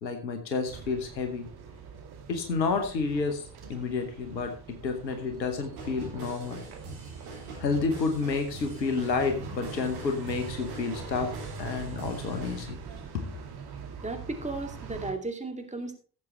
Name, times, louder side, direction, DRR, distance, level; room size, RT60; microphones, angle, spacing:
voice 1, 0.0-1.5 2.3-6.6 7.6-11.3 11.6-12.8, left 4 dB, 85° left, 6 dB, 1.1 m, -30 dB
sound 1, 0.6-15.1, right 5 dB, 50° right, 2.4 m, -43 dB
sound 2, 5.8-12.6, right 3 dB, 75° right, 3.4 m, -44 dB
voice 2, 14.0-15.9, right 2 dB, 15° right, 3 dB, 2.4 m, -35 dB
16.5 x 7.4 x 3.2 m, 0.41 s
figure-of-eight pair, 40°, 50 cm